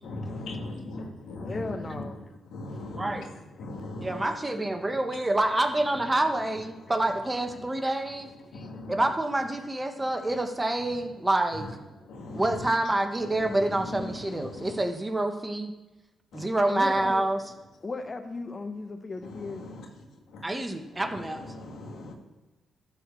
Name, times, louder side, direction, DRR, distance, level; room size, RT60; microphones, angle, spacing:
voice 1, 0.0-4.3 4.9-5.0 5.9-6.1 6.8-7.2 7.6-7.9 8.5-9.1 11.6-11.7 12.0-12.7 13.2-14.8 16.3-16.4 16.9-17.1 19.2-20.6 20.9-22.1, left 2 dB, 80° left, 1 dB, 2.0 m, -40 dB
voice 2, 1.4-2.2 8.5-8.7 16.7-17.2 17.8-19.6, left 3 dB, 35° left, 6 dB, 1.1 m, -36 dB
voice 3, 4.0-8.3 8.9-11.7 12.3-15.7 16.3-17.5 20.4-21.4, right 1 dB, 20° right, 6 dB, 1.3 m, -27 dB
12.0 x 4.9 x 6.9 m, 1.1 s
cardioid pair, 65°, 0 cm